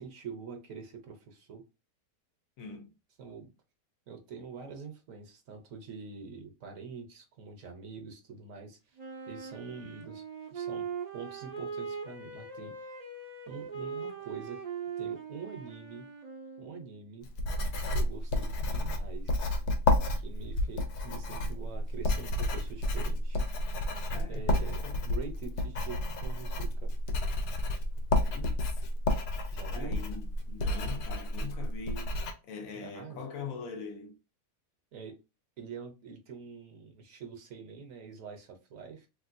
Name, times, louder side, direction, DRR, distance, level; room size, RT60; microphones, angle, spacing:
voice 1, 0.0-1.6 3.2-3.5 4.1-8.8 9.3-10.2 10.5-10.9 11.1-12.7 13.5-14.6 15.0-16.1 16.6-17.3 17.9-19.5 20.1-23.4 24.3-26.9 29.5-30.0 32.7-33.2 34.9-35.2 35.6-39.1, right 5 dB, 65° right, 1.0 m, -45 dB
voice 2, 2.6-2.9 24.1-25.1 28.3-28.9 29.7-34.2, left 5 dB, 65° left, 1.0 m, -43 dB
Wind instrument woodwind instrument, 9.0-17.0, right 6 dB, 45° right, 0.5 m, -41 dB
Writing, 17.2-32.3, left 1 dB, 80° left, 1.3 m, -31 dB
3.2 x 2.9 x 2.5 m
omnidirectional pair, 1.7 m